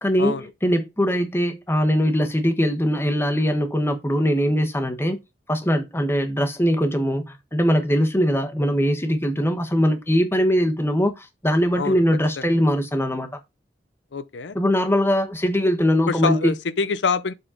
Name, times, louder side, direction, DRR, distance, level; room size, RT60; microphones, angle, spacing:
voice 1, 0.0-5.2 5.5-13.3 14.5-16.5, equal, 15° left, 1.2 m, -21 dB
voice 2, 14.1-14.6 16.1-17.3, left 5 dB, 85° left, 0.6 m, -25 dB
7.5 x 4.2 x 5.1 m
head